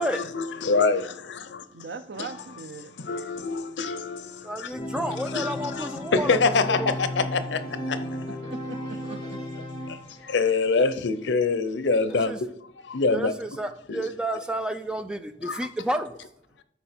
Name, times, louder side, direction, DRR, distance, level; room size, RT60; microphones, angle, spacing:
voice 1, 0.0-1.7 2.2-2.3 3.0-8.3 9.9-13.6 13.9-14.1 15.4-15.7, left 4 dB, 90° left, 0.7 m, -26 dB
voice 2, 1.7-2.9 8.4-9.5, right 4 dB, 70° right, 0.6 m, -39 dB
voice 3, 4.4-6.3 6.8-6.9 12.3-12.4 13.1-16.2, right 1 dB, 5° right, 0.5 m, -30 dB
Organ, 4.7-10.4, left 1 dB, 25° left, 1.9 m, -34 dB
12.5 x 4.7 x 4.4 m
head